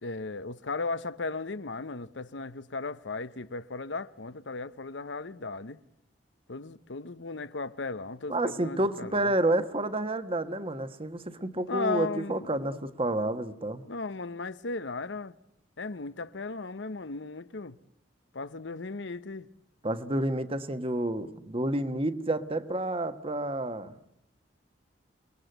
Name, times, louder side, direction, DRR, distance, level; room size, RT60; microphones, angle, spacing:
voice 1, 0.0-5.8 6.5-9.3 11.7-12.8 13.9-15.3 15.8-17.8 18.3-19.5, left 3 dB, 85° left, 1.0 m, -36 dB
voice 2, 8.3-13.8 19.8-23.9, right 1 dB, 30° right, 1.4 m, -29 dB
29.0 x 20.5 x 8.0 m
head